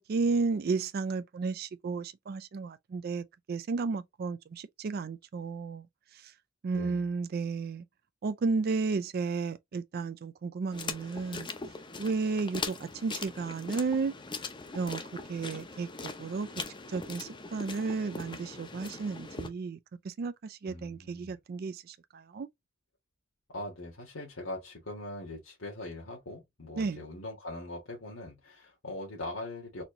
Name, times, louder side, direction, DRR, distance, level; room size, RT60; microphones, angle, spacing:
voice 1, 0.0-5.9 6.1-6.3 6.6-7.8 8.2-11.5 12.0-14.1 14.7-15.0 15.3-15.9 16.2-16.5 16.9-19.8 20.0-22.5 26.8-27.0, right 4 dB, 50° right, 0.4 m, -33 dB
voice 2, 6.7-7.0 20.7-21.4 23.5-29.8, left 2 dB, 80° left, 1.6 m, -41 dB
sound 1, 10.7-19.5, left 4 dB, 25° left, 0.6 m, -41 dB
4.3 x 2.8 x 2.6 m
head